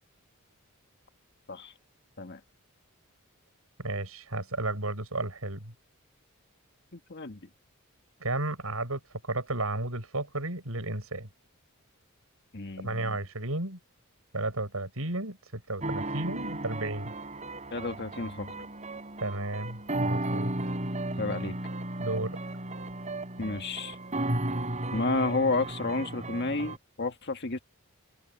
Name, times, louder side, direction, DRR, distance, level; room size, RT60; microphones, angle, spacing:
voice 1, 3.8-5.7 8.2-9.0 9.3-11.3 12.8-13.8 14.3-17.1 19.2-20.5 22.0-22.4, right 2 dB, 80° right, 7.1 m, -33 dB
voice 2, 6.9-7.4 12.5-13.2 17.7-18.6 21.2-21.6 23.4-23.9 24.9-27.6, left 3 dB, 55° left, 1.8 m, -31 dB
sound 1, 15.8-26.8, right 1 dB, 35° right, 6.9 m, -34 dB
open air
head